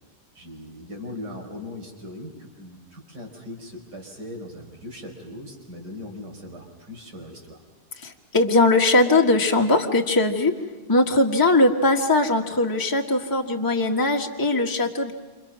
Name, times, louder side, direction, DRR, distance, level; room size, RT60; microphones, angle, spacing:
voice 1, 0.4-7.6, left 1 dB, 65° right, 2 dB, 5.6 m, -39 dB
voice 2, 8.0-10.6 10.9-15.1, left 2 dB, 10° left, 1 dB, 1.5 m, -20 dB
29.0 x 27.5 x 6.3 m, 1.3 s
omnidirectional pair, 1.9 m